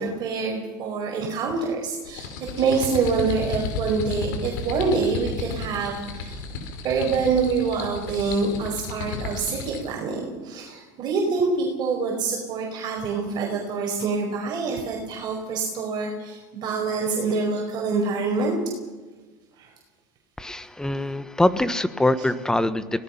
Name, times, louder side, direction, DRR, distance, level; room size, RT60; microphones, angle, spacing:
voice 1, 0.0-2.3 2.6-6.4 6.8-18.5 19.6-19.7, right 4 dB, 45° right, -1 dB, 5.0 m, -26 dB
sound 1, 2.1-9.9, left 4 dB, 85° left, 4.7 m, -33 dB
voice 2, 20.4-23.0, left 1 dB, 5° left, 13 dB, 1.2 m, -23 dB
25.0 x 18.0 x 5.9 m, 1.3 s
supercardioid pair, 115°, 10 cm